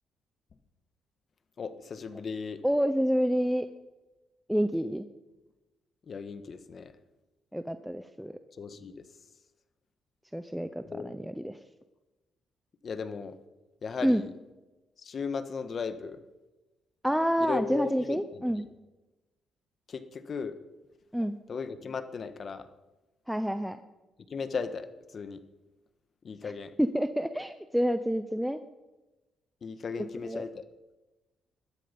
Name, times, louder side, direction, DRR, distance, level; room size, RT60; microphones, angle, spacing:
voice 1, 1.6-2.6 6.1-6.9 8.6-9.0 10.9-11.1 12.8-13.4 13.8-14.3 15.0-16.2 17.4-18.6 19.9-20.6 21.5-22.7 24.3-25.4 26.2-26.7 29.6-30.6, left 5 dB, 45° left, 11 dB, 1.5 m, -36 dB
voice 2, 2.6-3.7 4.5-5.1 7.5-8.3 10.3-11.6 14.0-14.2 17.0-18.7 21.1-21.4 23.3-23.8 26.8-28.6 30.0-30.4, equal, ahead, 9 dB, 0.8 m, -28 dB
20.5 x 13.0 x 5.4 m, 1.1 s
cardioid pair, 90°, 0 cm